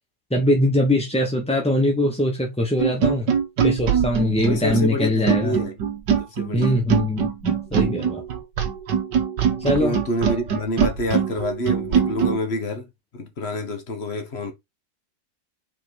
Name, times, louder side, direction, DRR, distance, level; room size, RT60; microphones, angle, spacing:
voice 1, 0.3-3.3 3.6-5.5 6.5-8.2 9.6-10.0, left 1 dB, 5° left, 0.9 m, -22 dB
sound 1, 2.8-12.4, right 7 dB, 70° right, 1.9 m, -23 dB
voice 2, 4.5-5.7 6.2-6.7 9.6-12.9 13.1-14.5, left 1 dB, 35° left, 1.6 m, -27 dB
5.4 x 4.4 x 4.6 m
omnidirectional pair, 2.0 m